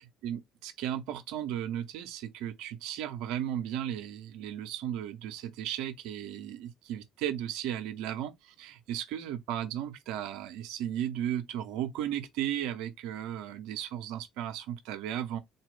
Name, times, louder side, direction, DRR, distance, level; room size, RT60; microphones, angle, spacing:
voice 1, 0.2-15.4, right 11 dB, 65° right, 0.7 m, -35 dB
4.1 x 2.2 x 3.5 m
figure-of-eight pair, 55°, 0 cm